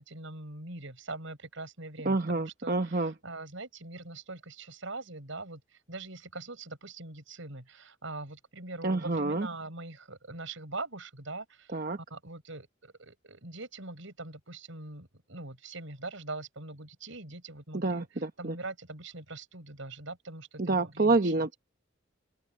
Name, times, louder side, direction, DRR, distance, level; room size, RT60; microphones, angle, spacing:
voice 1, 0.0-5.6 5.9-11.8 12.1-18.1 18.4-21.5, right 2 dB, 65° right, 5.5 m, -42 dB
voice 2, 2.0-3.1 8.8-9.5 11.7-12.0 17.7-18.6 20.6-21.5, right 3 dB, 40° right, 1.0 m, -28 dB
open air
head